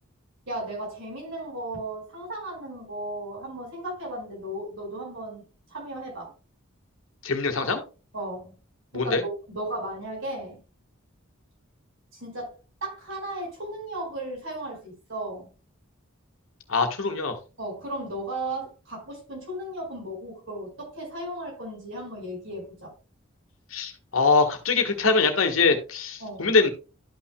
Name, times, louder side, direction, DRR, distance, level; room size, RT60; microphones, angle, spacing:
voice 1, 0.5-6.3 8.1-8.5 8.9-10.6 12.1-12.5 12.8-15.5 17.6-22.9 26.2-26.5, right 1 dB, 70° right, 4.7 m, -35 dB
voice 2, 7.2-7.8 8.9-9.2 16.7-17.4 23.7-26.7, left 4 dB, 75° left, 1.4 m, -23 dB
12.5 x 5.9 x 2.2 m
head